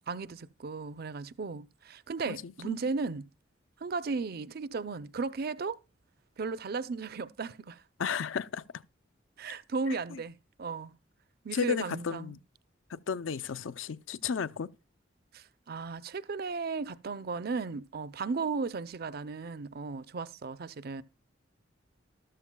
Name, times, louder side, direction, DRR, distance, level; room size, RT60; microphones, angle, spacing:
voice 1, 0.1-3.2 3.8-5.8 6.4-7.8 9.4-10.9 11.4-12.4 15.3-21.0, right 4 dB, 50° right, 0.5 m, -35 dB
voice 2, 2.3-2.8 8.0-8.6 9.5-9.6 10.1-10.2 11.5-12.4 12.9-14.7, left 6 dB, 85° left, 0.5 m, -33 dB
13.5 x 13.0 x 2.2 m
head